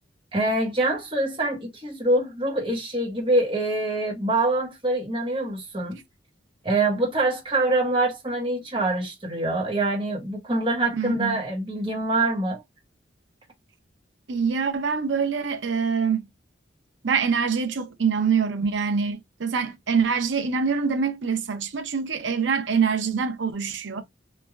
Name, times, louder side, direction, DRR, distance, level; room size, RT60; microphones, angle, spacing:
voice 1, 0.3-6.0 6.6-12.6, right 2 dB, 25° right, 1.0 m, -25 dB
voice 2, 11.0-11.4 14.3-16.3 17.0-24.0, right 5 dB, 85° right, 0.6 m, -25 dB
3.1 x 2.3 x 2.3 m
head